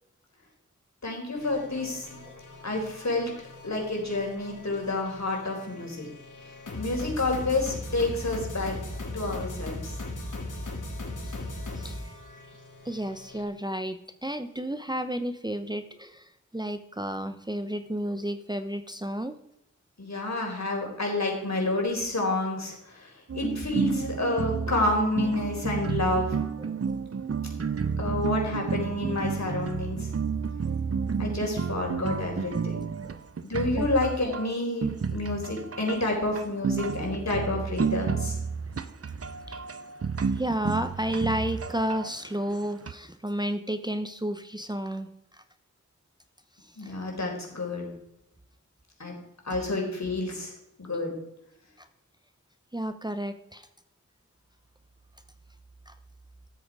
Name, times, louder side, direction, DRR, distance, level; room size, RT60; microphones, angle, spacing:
voice 1, 1.0-2.1 2.6-3.3 3.6-6.1 6.8-8.7 9.1-9.9 20.0-26.3 28.0-30.1 31.2-32.9 33.4-38.3 46.8-47.9 49.0-49.1 49.4-50.5 50.8-51.1, left 2 dB, 60° left, 0 dB, 4.1 m, -29 dB
sound 1, 1.3-13.4, left 1 dB, 85° left, 2.3 m, -39 dB
voice 2, 11.7-12.2 12.8-19.3 26.6-26.8 33.0-33.2 33.8-33.9 39.5-39.6 40.3-45.4 46.6-46.9 51.8-51.9 52.7-53.7 55.9-56.0, right 1 dB, 15° right, 8 dB, 0.8 m, -32 dB
sound 2, 23.3-42.9, right 5 dB, 50° right, 0.7 m, -31 dB
14.0 x 7.8 x 4.9 m, 0.81 s
cardioid pair, 40°, 30 cm